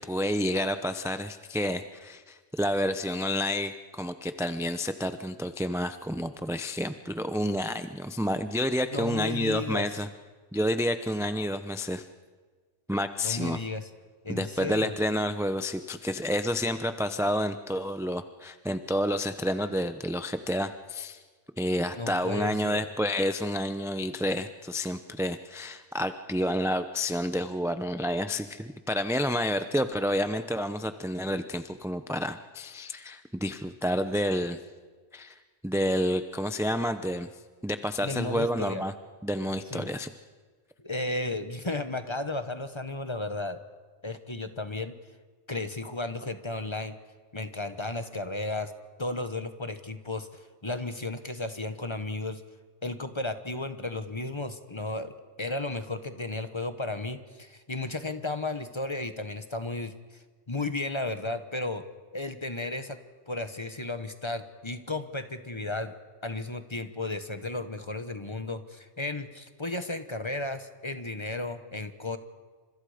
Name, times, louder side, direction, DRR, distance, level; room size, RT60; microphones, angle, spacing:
voice 1, 0.0-10.1 10.5-12.0 12.9-13.6 14.3-21.2 21.6-34.6 35.1-37.3 37.6-38.9 39.2-40.1, equal, 5° right, 9 dB, 0.5 m, -29 dB
voice 2, 8.9-9.9 13.2-13.9 14.2-14.9 22.0-22.8 38.0-38.8 39.7-39.9 40.8-43.6 44.0-44.9 45.5-47.0 47.3-48.7 49.0-52.4 52.8-59.9 60.5-61.8 62.1-63.0 63.3-65.9 66.2-72.2, left 2 dB, 25° left, 9 dB, 1.3 m, -34 dB
29.0 x 27.0 x 5.1 m, 1.4 s
omnidirectional pair, 1.3 m